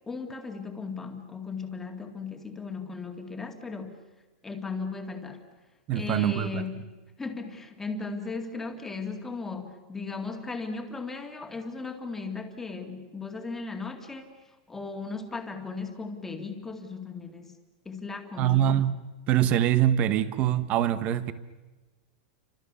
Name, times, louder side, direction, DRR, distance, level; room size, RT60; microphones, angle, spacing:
voice 1, 0.1-4.0 4.4-5.4 5.9-6.9 7.2-14.3 14.7-17.5 17.9-18.8, left 4 dB, 5° left, 2.2 m, -36 dB
voice 2, 5.9-6.6 18.4-19.0 19.3-21.3, right 11 dB, 25° right, 1.2 m, -24 dB
30.0 x 25.5 x 7.0 m
supercardioid pair, 170°, 5 cm